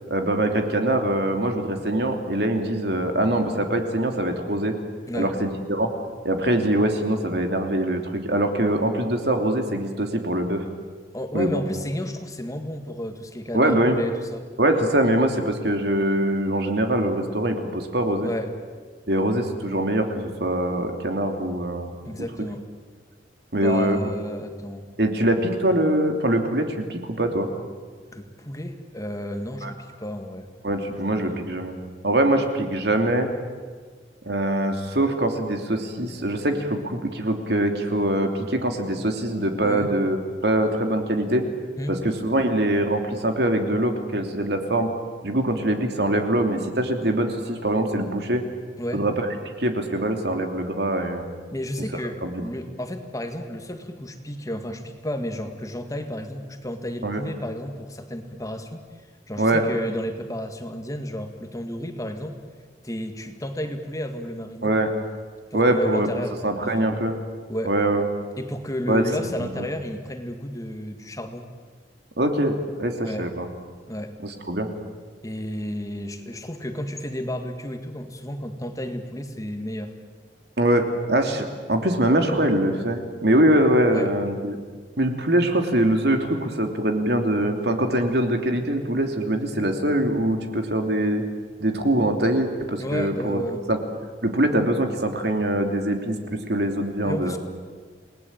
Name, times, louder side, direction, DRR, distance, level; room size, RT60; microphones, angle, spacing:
voice 1, 0.1-4.8 5.1-5.9 6.2-10.6 11.3-11.6 13.5-14.0 14.6-18.3 19.1-21.9 23.5-24.0 25.0-27.5 29.6-29.7 30.6-31.7 32.0-33.3 34.2-40.2 40.4-41.4 41.9-44.9 45.2-48.4 48.9-49.3 49.6-51.3 52.2-52.4 57.0-57.2 59.4-59.6 64.6-64.9 65.5-66.1 66.4-67.2 67.6-68.1 68.9-69.0 69.4-69.7 72.2-73.5 74.2-74.7 80.6-84.6 85.0-91.2 91.6-93.4 93.7-93.8 94.2-96.2 96.5-97.4, right 1 dB, 65° right, 4 dB, 3.0 m, -23 dB
voice 2, 11.1-14.5 18.2-18.5 22.1-22.7 23.6-24.8 28.1-30.5 31.1-31.2 39.6-39.9 41.8-42.0 48.8-49.1 51.5-58.8 59.3-62.4 62.8-64.7 65.5-67.1 67.5-67.7 68.4-71.5 73.0-73.3 73.9-74.2 75.2-79.9 83.9-84.1 92.8-93.6 97.0-97.4, equal, 20° left, 6 dB, 1.9 m, -32 dB
29.0 x 19.0 x 8.9 m, 1.5 s
head